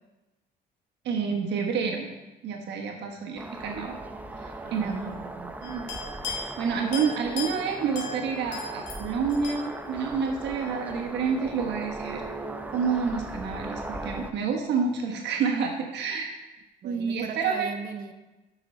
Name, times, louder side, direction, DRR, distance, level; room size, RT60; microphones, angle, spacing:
voice 1, 1.0-2.1 2.4-4.0 4.4-5.1 5.6-5.9 6.3-12.2 12.7-16.3 16.8-17.7, right 6 dB, 75° right, 1 dB, 1.3 m, -29 dB
sound 1, 3.4-14.3, right 2 dB, 10° right, 0.6 m, -38 dB
voice 2, 4.6-5.6 16.8-18.1, right 5 dB, 55° right, 7 dB, 0.9 m, -39 dB
sound 2, 5.6-6.6 6.9-9.6, left 4 dB, 80° left, 2.6 m, -37 dB
9.5 x 6.2 x 4.4 m, 1.1 s
cardioid pair, 130°, 18 cm